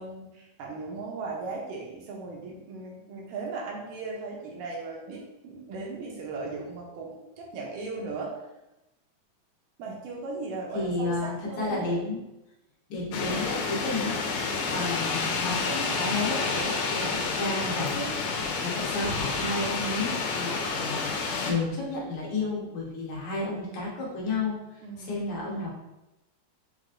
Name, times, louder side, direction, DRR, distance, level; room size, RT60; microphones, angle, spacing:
voice 1, 0.0-8.4 9.8-12.0 24.8-25.3, right 3 dB, 80° right, -1 dB, 2.2 m, -37 dB
voice 2, 10.7-12.2 12.9-14.2 14.7-18.1 18.3-25.8, left 2 dB, 65° left, -4 dB, 2.3 m, -32 dB
sound 1, 13.1-21.5, left 4 dB, 85° left, 2.5 m, -29 dB
6.5 x 3.0 x 2.5 m, 0.95 s
omnidirectional pair, 4.1 m